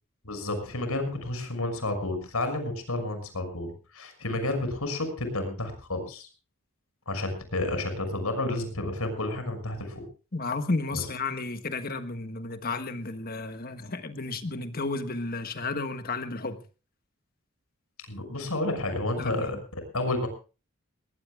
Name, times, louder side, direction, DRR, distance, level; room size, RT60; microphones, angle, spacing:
voice 1, 0.2-6.3 7.1-10.0 10.9-11.0 18.1-19.6 19.9-20.3, left 2 dB, 90° left, 8 dB, 6.2 m, -31 dB
voice 2, 10.3-16.6 19.2-19.5, left 3 dB, 45° left, 9 dB, 1.5 m, -32 dB
21.5 x 20.0 x 2.4 m, 0.34 s
head